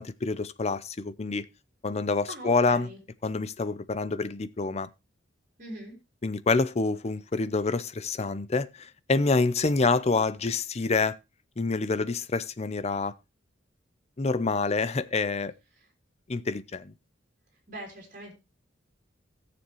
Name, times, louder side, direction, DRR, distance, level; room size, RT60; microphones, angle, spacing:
voice 1, 0.0-1.4 1.8-2.9 3.2-4.9 6.2-11.2 11.6-13.1 14.2-15.5 16.3-16.9, left 3 dB, 35° left, 0.6 m, -27 dB
voice 2, 2.3-3.0 5.6-6.0 15.7-15.9 17.7-18.3, right 1 dB, 45° right, 3.7 m, -42 dB
16.0 x 7.0 x 3.0 m
head